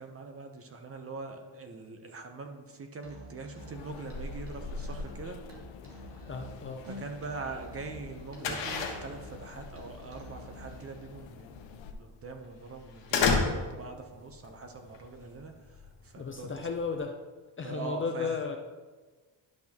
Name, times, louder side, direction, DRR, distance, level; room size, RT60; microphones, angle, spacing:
voice 1, 0.0-5.4 6.9-16.7 17.6-18.4, right 4 dB, 30° right, 5 dB, 0.7 m, -43 dB
Musical instrument, 3.0-10.9, right 1 dB, 65° right, 1.8 m, -49 dB
sound 1, 3.6-11.9, left 3 dB, 90° left, 0.8 m, -45 dB
sound 2, 6.3-17.0, left 5 dB, 75° left, 1.4 m, -34 dB
voice 2, 6.3-6.9 16.2-17.2 17.6-18.6, left 5 dB, 30° left, 4 dB, 0.5 m, -34 dB
10.5 x 6.1 x 2.9 m, 1.3 s
cardioid pair, 140°, 44 cm